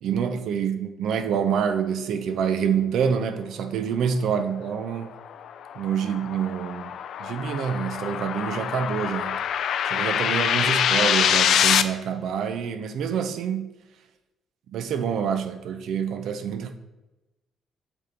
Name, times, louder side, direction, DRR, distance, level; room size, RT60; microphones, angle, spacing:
voice 1, 0.0-5.1 5.8-9.4 9.9-13.7 14.7-16.7, right 7 dB, 75° right, 0.6 m, -27 dB
sound 1, 5.0-11.8, left 9 dB, 70° left, 0.3 m, -25 dB
8.1 x 2.9 x 3.9 m
cardioid pair, 90°, 0 cm